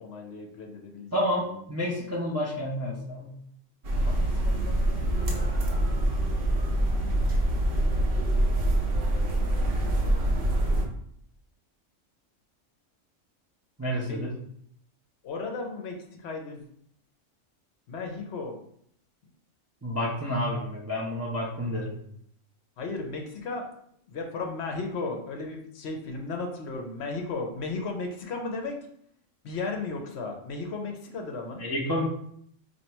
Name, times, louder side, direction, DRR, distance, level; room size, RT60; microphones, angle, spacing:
voice 1, 0.0-1.2 4.0-5.5 9.7-10.9 14.0-14.3 15.2-16.7 17.9-18.6 22.8-23.7 24.1-28.8 29.4-31.6, left 3 dB, 60° left, 3 dB, 0.8 m, -35 dB
voice 2, 1.1-3.3 13.8-14.3 19.8-21.9 31.6-32.0, left 1 dB, 20° right, -4 dB, 0.4 m, -29 dB
sound 1, 3.8-10.9, right 1 dB, 55° right, 0.8 m, -25 dB
2.9 x 2.6 x 4.4 m, 0.67 s
omnidirectional pair, 1.4 m